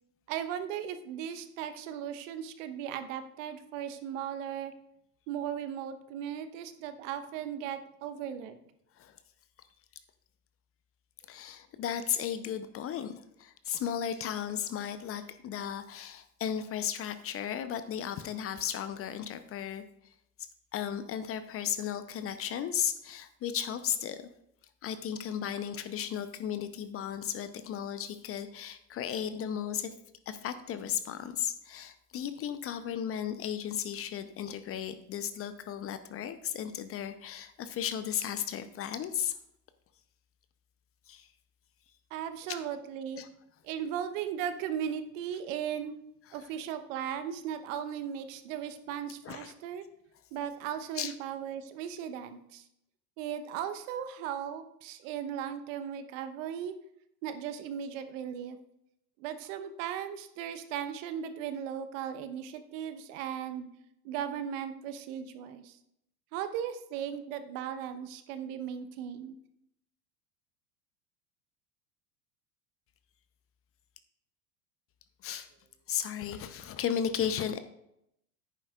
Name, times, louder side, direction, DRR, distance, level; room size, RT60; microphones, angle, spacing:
voice 1, 0.3-4.7 5.3-8.6 42.1-43.2 43.6-45.9 46.3-49.8 50.3-52.6 53.2-56.7 57.2-58.6 59.2-63.7 64.0-65.8 66.3-69.3, right 9 dB, 55° right, 10 dB, 1.0 m, -37 dB
voice 2, 11.3-19.8 20.7-24.2 24.8-29.9 30.3-39.3 41.1-41.3 42.5-42.6 43.2-43.3 46.4-46.5 49.2-49.5 50.9-51.1 75.2-75.5 75.9-77.6, left 9 dB, 30° left, 11 dB, 0.7 m, -35 dB
10.5 x 9.2 x 2.4 m, 0.77 s
figure-of-eight pair, 80°, 46 cm